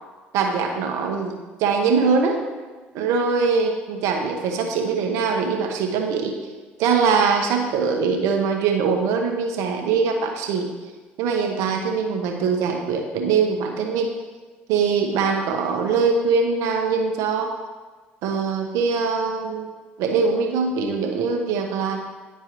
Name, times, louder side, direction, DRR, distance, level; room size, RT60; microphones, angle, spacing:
voice 1, 0.3-1.3 1.6-2.4 2.9-6.3 6.8-10.7 11.2-14.1 14.7-17.5 18.2-19.7 20.0-22.0, right 5 dB, 70° right, 3 dB, 1.1 m, -22 dB
10.0 x 4.5 x 3.1 m, 1.3 s
supercardioid pair, 70°, 5 cm